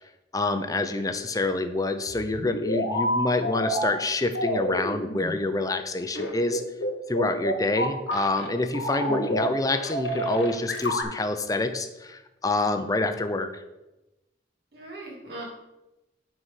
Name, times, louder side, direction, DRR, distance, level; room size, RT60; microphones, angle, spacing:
voice 1, 0.3-6.6 7.1-13.6, left 2 dB, 20° left, 8 dB, 0.6 m, -27 dB
sound 1, 2.1-3.9 4.4-5.3 6.2-8.5 8.7-9.5 9.7-11.0, equal, 85° left, 1.5 m, -28 dB
voice 2, 9.0-9.4 14.7-15.4, right 1 dB, 60° right, -4 dB, 3.1 m, -39 dB
8.1 x 4.8 x 5.7 m, 0.98 s
head